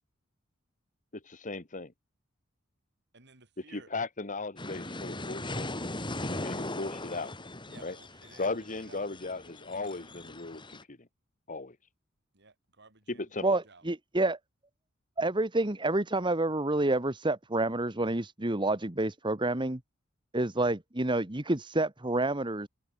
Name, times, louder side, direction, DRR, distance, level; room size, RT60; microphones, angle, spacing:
voice 1, 1.2-1.9 3.7-5.7 6.2-7.3 7.8-8.0 8.4-10.6 10.9-11.0 11.5-11.7 13.1-13.4, left 3 dB, 40° left, 1.9 m, -36 dB
voice 2, 3.1-3.9 7.7-9.1 12.3-13.8, right 3 dB, 55° right, 4.9 m, -56 dB
sound 1, 4.6-10.8, left 1 dB, 25° left, 5.1 m, -39 dB
voice 3, 13.4-14.4 15.2-19.8 20.3-22.7, right 2 dB, 25° right, 1.7 m, -28 dB
head